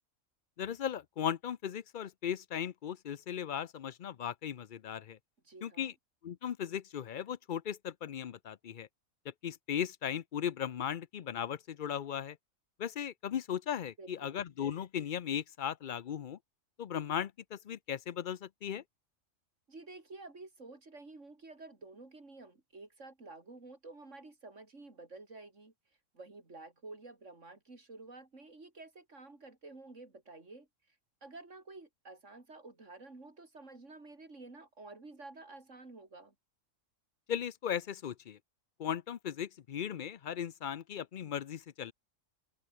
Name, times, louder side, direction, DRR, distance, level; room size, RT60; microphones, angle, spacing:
voice 1, 0.6-5.2 5.6-5.9 6.2-8.9 9.2-12.4 12.8-16.4 16.8-18.8 37.3-38.4 38.8-41.9, left 9 dB, 50° left, 0.6 m, -37 dB
voice 2, 5.4-5.9 14.0-14.4 19.7-25.7 26.1-31.0 31.2-36.3, right 3 dB, 65° right, 4.3 m, -51 dB
omnidirectional pair, 1.4 m